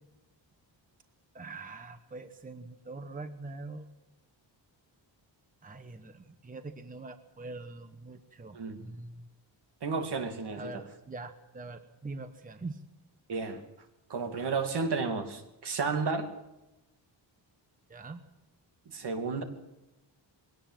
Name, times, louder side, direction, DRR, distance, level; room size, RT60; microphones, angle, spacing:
voice 1, 1.3-3.9 5.6-9.2 10.6-12.8 17.9-18.2, right 3 dB, 20° right, 8 dB, 1.0 m, -43 dB
voice 2, 9.8-10.8 13.3-13.6 14.1-16.3 18.9-19.4, right 4 dB, 60° right, 6 dB, 2.6 m, -32 dB
22.0 x 17.5 x 7.6 m, 0.94 s
wide cardioid pair, 180°, 45 cm